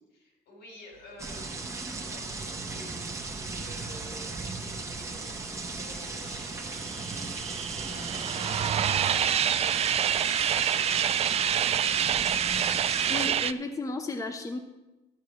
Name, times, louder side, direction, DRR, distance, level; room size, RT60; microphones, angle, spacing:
voice 1, 0.1-12.1, left 1 dB, 80° left, 1 dB, 4.0 m, -51 dB
sound 1, 1.2-13.3, right 3 dB, 20° right, 1.2 m, -36 dB
sound 2, 6.4-13.5, right 9 dB, 35° right, 0.3 m, -27 dB
voice 2, 12.9-14.6, left 2 dB, 20° left, 5 dB, 0.8 m, -34 dB
13.5 x 4.7 x 7.9 m, 1.1 s
cardioid pair, 110°, 17 cm